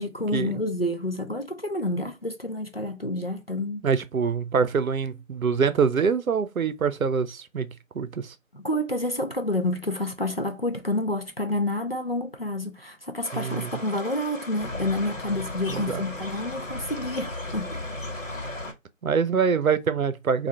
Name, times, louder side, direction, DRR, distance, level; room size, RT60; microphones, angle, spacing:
voice 1, 0.0-3.8 8.5-17.8, left 1 dB, 50° left, 0.4 m, -29 dB
voice 2, 3.8-7.7 7.9-8.3 13.3-13.7 15.7-16.0 19.0-20.5, right 6 dB, 85° right, 0.6 m, -24 dB
sound 1, 13.2-18.7, left 1 dB, 70° left, 1.3 m, -35 dB
2.8 x 2.4 x 3.2 m
figure-of-eight pair, 175°, 41 cm